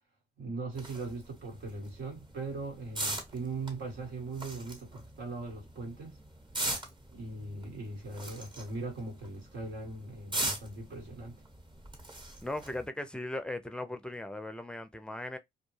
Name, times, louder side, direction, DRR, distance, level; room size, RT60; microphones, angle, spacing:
voice 1, 0.4-6.2 7.1-11.3, right 3 dB, 75° right, 1.5 m, -40 dB
sound 1, 0.7-12.9, right 1 dB, 25° right, 1.1 m, -41 dB
voice 2, 12.4-15.4, left 1 dB, 5° left, 0.5 m, -38 dB
2.3 x 2.1 x 3.1 m
supercardioid pair, 65°, 18 cm